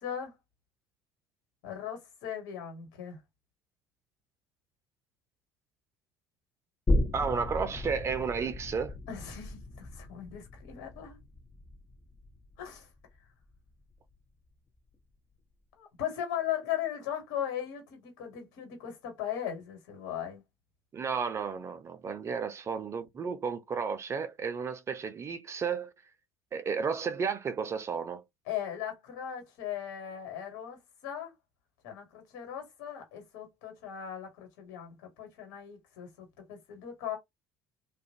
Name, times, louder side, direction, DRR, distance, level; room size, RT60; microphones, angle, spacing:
voice 1, 0.0-0.3 1.6-3.2 9.1-11.2 12.6-12.9 15.8-20.4 28.5-30.8 31.0-31.3 31.8-37.2, left 10 dB, 65° left, 1.6 m, -38 dB
sound 1, 6.9-14.1 14.5-14.6, left 1 dB, 25° left, 0.7 m, -35 dB
voice 2, 7.1-8.9 20.9-25.9 26.5-28.2, right 6 dB, 35° right, 0.6 m, -33 dB
2.4 x 2.1 x 2.7 m
figure-of-eight pair, 60°, 8 cm